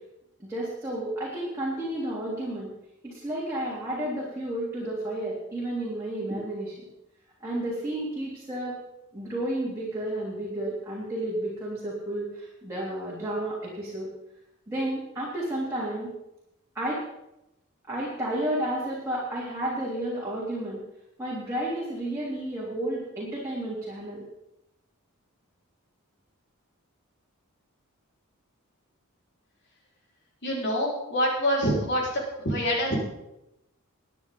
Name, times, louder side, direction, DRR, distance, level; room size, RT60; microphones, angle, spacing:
voice 1, 0.4-2.7 3.0-6.8 7.4-8.8 9.1-14.1 14.7-16.1 16.8-17.0 17.9-20.8 21.2-24.3, right 1 dB, 15° right, -8 dB, 3.6 m, -31 dB
voice 2, 30.4-32.0 32.4-32.9, equal, 50° left, -3 dB, 5.0 m, -25 dB
23.5 x 9.9 x 4.0 m, 0.88 s
head